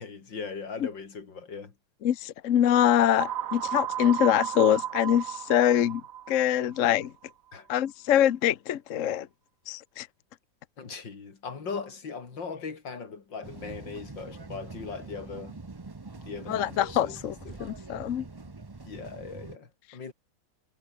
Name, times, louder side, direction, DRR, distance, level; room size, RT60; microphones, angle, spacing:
voice 1, 0.0-1.7 7.5-7.8 10.8-15.6 16.1-17.7 18.4-18.5 18.8-20.1, left 5 dB, 85° left, 3.6 m, -39 dB
voice 2, 2.0-6.0 6.3-7.1 7.7-9.3 9.7-10.1 16.5-17.3 17.6-18.2, left 10 dB, 55° left, 1.0 m, -24 dB
sound 1, 3.2-7.1, right 10 dB, 55° right, 1.1 m, -34 dB
sound 2, 13.4-19.6, right 3 dB, 25° right, 0.5 m, -44 dB
omnidirectional pair, 2.0 m